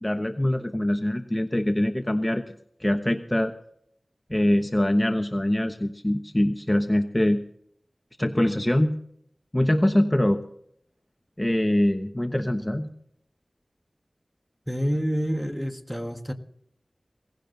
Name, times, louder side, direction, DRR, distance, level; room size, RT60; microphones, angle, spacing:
voice 1, 0.0-2.4 2.8-3.5 4.3-7.4 8.2-9.0 9.5-10.4 11.4-12.9, left 1 dB, 20° left, 7 dB, 1.1 m, -23 dB
voice 2, 14.7-16.3, equal, ahead, 7 dB, 1.6 m, -28 dB
18.0 x 16.0 x 4.0 m, 0.68 s
wide cardioid pair, 50°, 0 cm